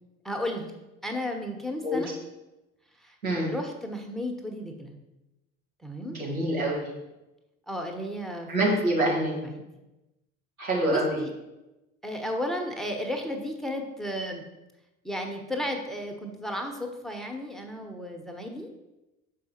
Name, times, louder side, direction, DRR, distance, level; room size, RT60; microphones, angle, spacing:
voice 1, 0.2-0.7 1.0-2.1 3.0-3.1 3.5-5.0 5.8-6.2 7.7-9.6 10.9-11.3 12.0-14.4 15.0-18.7, left 1 dB, ahead, 3 dB, 1.0 m, -34 dB
voice 2, 6.0-6.9 8.5-9.3 10.6-11.2, right 1 dB, 85° right, -6 dB, 2.0 m, -26 dB
6.5 x 5.0 x 4.4 m, 0.99 s
figure-of-eight pair, 60°, 41 cm